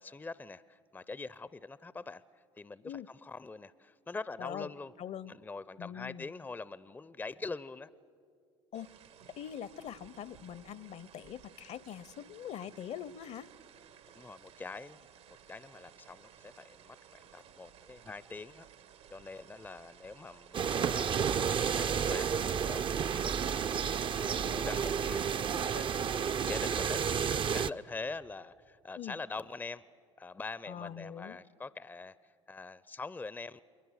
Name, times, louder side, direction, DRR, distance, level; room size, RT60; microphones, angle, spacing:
voice 1, 0.0-4.9 5.3-7.9 14.1-15.1 15.5-18.7 19.1-23.8 24.2-29.8 30.2-33.6, left 3 dB, 10° left, 18 dB, 0.5 m, -44 dB
voice 2, 4.4-4.7 5.0-5.3 5.8-6.3 8.7-8.9 9.3-13.5 29.0-29.2 30.7-31.4, left 9 dB, 45° left, 21 dB, 0.7 m, -43 dB
sound 1, 8.7-25.0, right 9 dB, 75° right, 1.5 m, -57 dB
sound 2, 20.5-27.7, right 7 dB, 35° right, 0.5 m, -31 dB
29.0 x 22.0 x 6.5 m, 2.3 s
hypercardioid pair, 65°, 16 cm